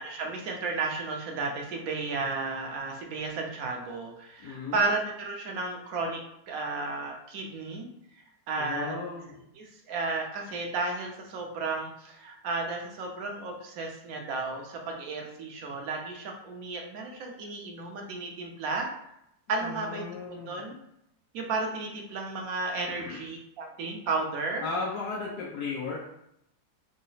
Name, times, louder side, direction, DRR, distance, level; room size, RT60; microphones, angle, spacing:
voice 1, 0.0-6.2 6.5-7.9 8.5-8.9 9.6-18.9 19.5-20.8 21.3-24.6, right 3 dB, 65° right, 1 dB, 1.1 m, -33 dB
voice 2, 4.4-4.8 8.6-9.4 19.6-20.6 23.0-23.2 24.6-26.1, left 4 dB, 80° left, -4 dB, 1.3 m, -35 dB
3.9 x 2.1 x 3.9 m, 0.78 s
omnidirectional pair, 1.8 m